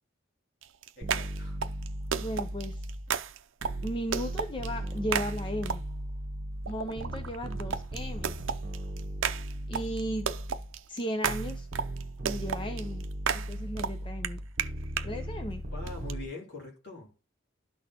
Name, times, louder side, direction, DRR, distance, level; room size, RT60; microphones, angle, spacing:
sound 1, 0.6-6.1 6.6-15.1 15.9-16.1, right 7 dB, 75° right, 0.6 m, -35 dB
voice 1, 1.0-1.6 15.7-17.1, left 3 dB, 60° left, 2.8 m, -43 dB
sound 2, 1.0-3.2 3.6-10.7 11.2-16.2, right 1 dB, 45° right, 1.1 m, -37 dB
voice 2, 2.2-2.9 3.8-5.8 6.7-8.4 9.7-10.3 10.9-11.7 12.2-13.1 13.3-14.4 15.0-15.6, equal, 25° left, 0.6 m, -35 dB
12.5 x 4.2 x 2.9 m
head